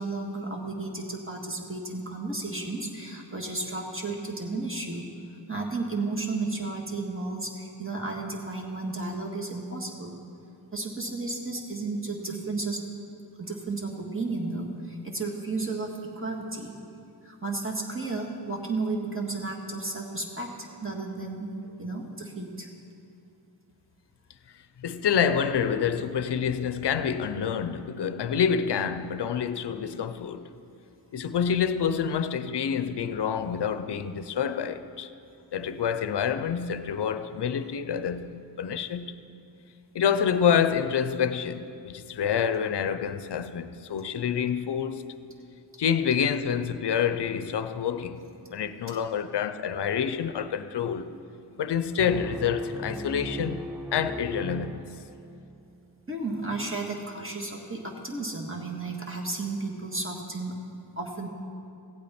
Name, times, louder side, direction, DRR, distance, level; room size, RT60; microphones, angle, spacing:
voice 1, 0.0-5.1 5.5-10.2 10.7-12.8 13.4-16.7 17.2-22.7 48.9-49.0 56.1-60.6 61.0-61.3, right 3 dB, 30° right, 1.7 m, -33 dB
voice 2, 24.8-30.4 31.1-35.1 35.5-39.2 39.9-45.1 45.8-51.2 51.6-53.6 53.9-54.9, left 7 dB, 65° left, 0.6 m, -27 dB
sound 1, 52.0-55.6, equal, 5° right, 0.6 m, -37 dB
15.0 x 8.5 x 4.3 m
cardioid pair, 45°, 43 cm